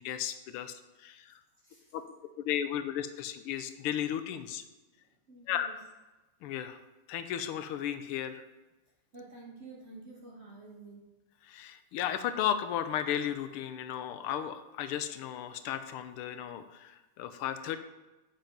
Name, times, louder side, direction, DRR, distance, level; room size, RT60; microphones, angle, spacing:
voice 1, 0.0-1.4 1.9-2.0 2.4-4.6 5.5-5.7 6.4-6.8 7.1-8.5 11.4-17.8, left 10 dB, 85° left, 10 dB, 1.6 m, -34 dB
voice 2, 5.3-5.7 9.1-11.0, right 3 dB, 45° right, -2 dB, 0.9 m, -49 dB
7.4 x 7.3 x 5.3 m, 1.1 s
omnidirectional pair, 2.4 m